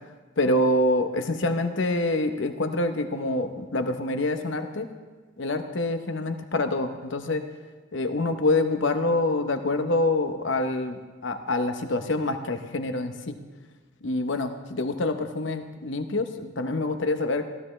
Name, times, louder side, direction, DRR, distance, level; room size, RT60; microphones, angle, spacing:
voice 1, 0.4-4.9 5.4-7.4 7.9-13.4 14.0-17.4, left 2 dB, 70° left, 8 dB, 0.8 m, -26 dB
15.0 x 12.0 x 3.2 m, 1.4 s
head